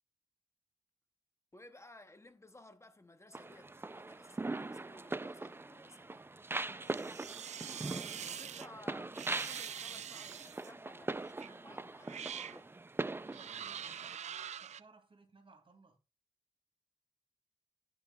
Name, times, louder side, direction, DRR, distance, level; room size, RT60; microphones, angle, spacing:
voice 1, 1.5-6.3 8.2-12.7, left 2 dB, 25° left, 0.8 m, -57 dB
sound 1, 3.3-14.1, right 3 dB, 20° right, 0.4 m, -42 dB
voice 2, 6.7-7.1 13.1-16.0, right 3 dB, 50° right, 2.5 m, -62 dB
sound 2, 6.9-8.7 9.1-10.7 11.4-11.6 12.0-12.6 13.3-14.8, right 8 dB, 85° right, 0.4 m, -44 dB
16.0 x 6.2 x 2.3 m
wide cardioid pair, 80°, 11 cm